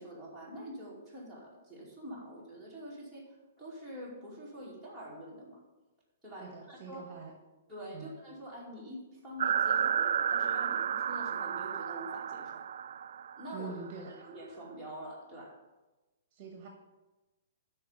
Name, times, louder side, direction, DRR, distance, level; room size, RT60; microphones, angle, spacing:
voice 1, 0.0-5.6 6.2-7.1 7.7-12.6 13.4-15.6, equal, 5° left, -6 dB, 2.5 m, -46 dB
voice 2, 6.4-7.3 7.9-8.1 13.5-14.1 16.3-16.7, right 5 dB, 35° right, 3 dB, 1.2 m, -44 dB
sound 1, 9.4-13.7, right 8 dB, 65° right, 0.3 m, -31 dB
12.5 x 4.7 x 6.7 m, 1.1 s
hypercardioid pair, 170°, 0 cm